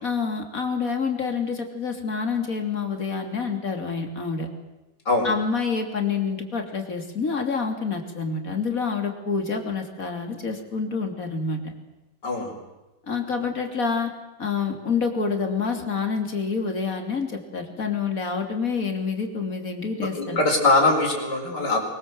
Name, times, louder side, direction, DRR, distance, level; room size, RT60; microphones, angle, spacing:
voice 1, 0.0-4.5 5.2-11.7 13.1-14.1 14.4-20.4, left 5 dB, 50° left, 4 dB, 3.4 m, -27 dB
voice 2, 12.2-12.5 20.0-21.8, left 2 dB, 65° left, 2 dB, 5.3 m, -22 dB
24.0 x 23.0 x 7.8 m, 1.0 s
omnidirectional pair, 2.0 m